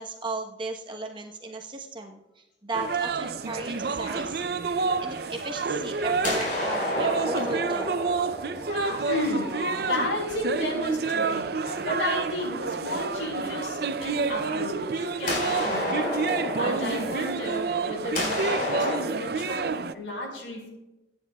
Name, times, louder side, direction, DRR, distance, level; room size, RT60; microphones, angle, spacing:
voice 1, 0.0-4.4 5.0-7.9 16.8-17.4, right 2 dB, 25° right, 2 dB, 1.0 m, -36 dB
sound 1, 2.7-19.9, right 4 dB, 55° right, 0.5 m, -29 dB
sound 2, 3.4-5.2 5.6-12.8 14.3-14.4 15.3-19.0, left 1 dB, 45° left, 5.0 m, -32 dB
voice 2, 9.0-11.6 11.8-20.7, left 1 dB, 85° left, 0 dB, 5.0 m, -33 dB
23.5 x 9.7 x 2.3 m, 0.98 s
head